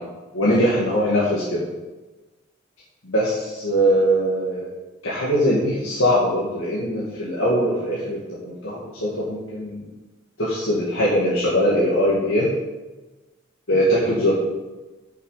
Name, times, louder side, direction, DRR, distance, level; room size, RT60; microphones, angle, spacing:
voice 1, 0.3-1.6 3.0-4.7 5.0-8.2 8.4-9.9 10.4-12.5 13.7-14.3, equal, 90° left, -7 dB, 2.2 m, -21 dB
9.7 x 7.1 x 5.1 m, 1.2 s
head